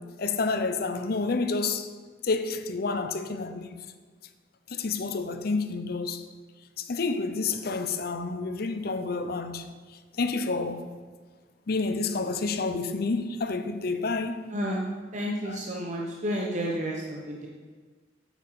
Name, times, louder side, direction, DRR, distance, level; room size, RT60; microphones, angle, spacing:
voice 1, 0.0-1.9 2.2-3.8 4.7-6.2 6.8-9.7 10.2-10.9 11.7-14.5 15.5-15.6, left 3 dB, 60° left, 0.7 m, -29 dB
voice 2, 14.5-14.9 15.1-17.5, equal, 45° right, 1.0 m, -31 dB
8.1 x 7.2 x 5.8 m
head